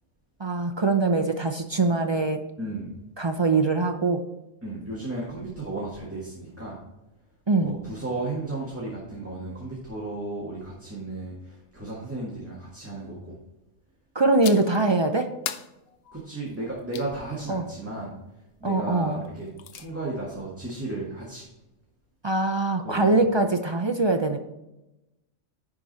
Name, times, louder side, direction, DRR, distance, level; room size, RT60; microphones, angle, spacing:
voice 1, 0.4-2.4 3.2-4.2 7.5-7.8 14.1-15.3 17.5-17.7 18.6-19.2 22.2-24.4, right 3 dB, 40° right, 5 dB, 0.3 m, -23 dB
voice 2, 2.6-2.9 4.6-6.8 7.6-13.4 16.1-18.1 18.6-21.5 22.8-23.2, right 2 dB, 10° right, -5 dB, 1.7 m, -34 dB
sound 1, 14.4-14.8 15.5-17.1 19.2-19.9, left 9 dB, 65° left, 0.7 m, -38 dB
10.5 x 4.9 x 4.1 m, 0.95 s
omnidirectional pair, 1.3 m